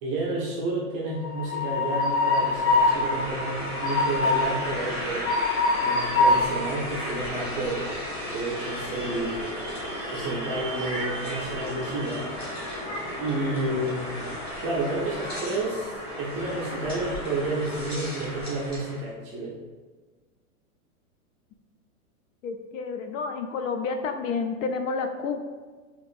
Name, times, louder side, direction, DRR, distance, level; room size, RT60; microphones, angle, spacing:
voice 1, 0.0-5.3 5.8-7.9 8.3-9.5 10.1-12.7 13.2-14.2 14.6-19.5, right 2 dB, 25° right, -5 dB, 0.5 m, -30 dB
Train, 1.1-18.9, left 2 dB, 10° left, 1.4 m, -28 dB
voice 2, 22.4-25.4, left 5 dB, 65° left, 6 dB, 0.5 m, -30 dB
4.3 x 2.9 x 2.5 m, 1.4 s
supercardioid pair, 155°, 43 cm